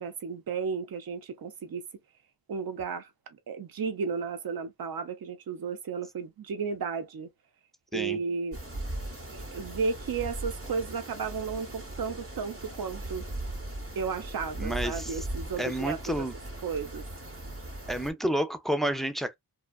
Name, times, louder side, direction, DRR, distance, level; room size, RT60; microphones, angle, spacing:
voice 1, 0.0-1.9 2.5-3.1 3.5-7.3 7.9-8.6 9.3-13.3 14.0-16.3 16.6-17.1, right 5 dB, 65° right, 0.7 m, -33 dB
sound 1, 8.5-18.1, right 1 dB, 35° right, 0.9 m, -39 dB
voice 2, 14.6-15.2 15.6-16.3 17.9-19.3, right 1 dB, ahead, 0.4 m, -30 dB
2.7 x 2.3 x 2.2 m
wide cardioid pair, 60°, 39 cm